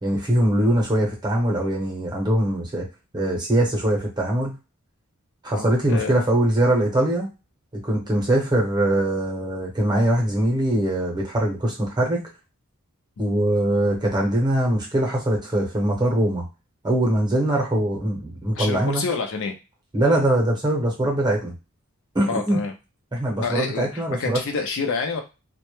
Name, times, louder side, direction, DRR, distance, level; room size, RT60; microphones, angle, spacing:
voice 1, 0.0-2.9 3.1-4.6 5.4-7.3 7.8-12.2 13.2-16.4 16.8-19.0 19.9-21.5 22.1-22.6 23.1-24.4, right 1 dB, 20° right, -1 dB, 0.7 m, -22 dB
voice 2, 5.5-6.2 13.2-13.3 18.5-19.6 22.3-22.7 23.4-25.2, left 4 dB, 60° left, 3 dB, 0.5 m, -28 dB
2.2 x 2.0 x 3.0 m, 0.28 s
head